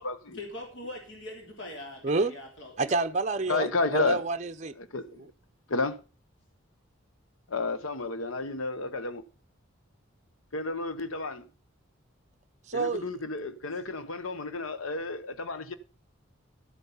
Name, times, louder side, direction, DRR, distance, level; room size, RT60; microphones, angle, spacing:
voice 1, 0.3-2.9 3.4-3.6, left 1 dB, 60° left, 3.1 m, -42 dB
voice 2, 2.0-2.3 2.8-4.7 12.7-13.1, right 3 dB, 35° right, 0.6 m, -29 dB
voice 3, 3.5-4.2 4.8-5.2 5.7-6.0 7.5-9.2 10.5-11.5 12.7-15.7, left 3 dB, 85° left, 1.0 m, -31 dB
12.5 x 8.0 x 5.5 m
head